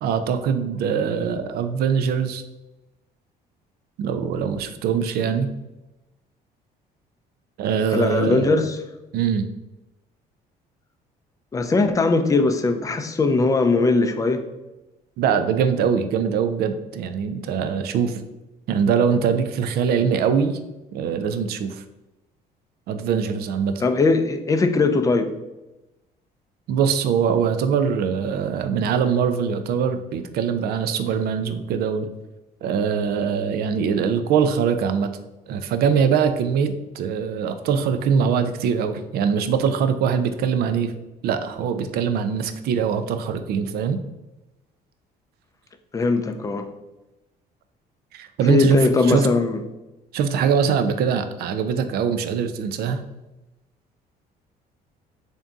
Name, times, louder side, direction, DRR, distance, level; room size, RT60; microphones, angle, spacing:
voice 1, 0.0-2.4 4.0-5.5 7.6-8.6 9.1-9.5 15.2-18.2 18.7-20.6 20.9-21.8 22.9-23.8 26.7-32.1 32.6-35.1 35.5-40.9 41.2-44.0 48.1-49.3 50.1-53.0, right 7 dB, 70° right, 9 dB, 0.4 m, -22 dB
voice 2, 7.9-8.8 11.5-14.4 23.8-25.3 45.9-46.7 48.5-49.6, left 3 dB, 20° left, 7 dB, 0.4 m, -20 dB
3.5 x 2.6 x 3.6 m, 1.0 s
cardioid pair, 110°, 17 cm